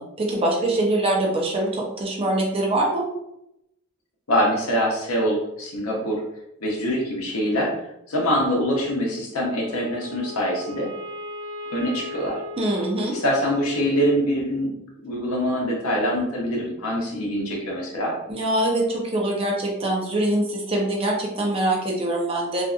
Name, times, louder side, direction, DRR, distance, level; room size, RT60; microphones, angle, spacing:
voice 1, 0.0-3.0 12.6-13.1 18.3-22.6, right 1 dB, 25° right, -1 dB, 0.5 m, -23 dB
voice 2, 4.3-6.2 6.6-7.7 8.1-10.9 11.7-12.4 13.1-14.7 15.0-18.1, equal, 70° left, -1 dB, 0.8 m, -24 dB
Wind instrument woodwind instrument, 9.4-13.8, left 2 dB, 50° right, 0.9 m, -37 dB
2.6 x 2.4 x 2.3 m, 0.83 s
head